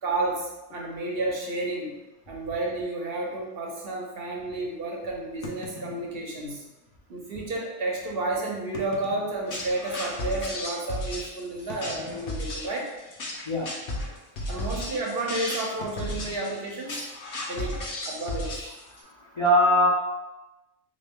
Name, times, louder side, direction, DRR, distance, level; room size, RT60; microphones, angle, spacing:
voice 1, 0.0-1.9 2.3-6.6 7.1-12.9 14.5-17.1 17.5-17.8 18.1-18.7, right 2 dB, 55° right, -2 dB, 0.9 m, -31 dB
sound 1, 0.7-0.9 1.6-1.7 2.0-2.1 2.7-2.8 5.4-6.6 7.5-7.6 8.6-10.0 10.5-10.6 11.7-12.8 13.1-13.4 13.7-14.0 15.8-17.4, left 2 dB, 85° left, 1.0 m, -44 dB
sound 2, 9.5-19.0, left 1 dB, 55° left, 0.9 m, -34 dB
voice 2, 19.0-19.9, left 1 dB, 35° left, -6 dB, 0.5 m, -21 dB
3.2 x 2.7 x 3.5 m, 1.0 s
omnidirectional pair, 1.2 m